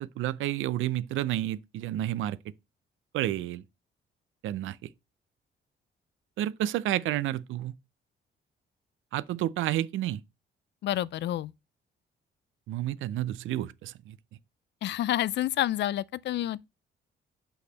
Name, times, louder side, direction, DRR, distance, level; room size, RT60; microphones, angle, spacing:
voice 1, 0.0-2.4 3.1-3.6 4.4-4.8 6.4-7.7 9.1-10.2 12.7-14.2, right 13 dB, 80° right, 0.5 m, -30 dB
voice 2, 10.8-11.5 14.8-16.6, left 13 dB, 60° left, 0.4 m, -29 dB
6.2 x 5.7 x 4.0 m
cardioid pair, 90°, 20 cm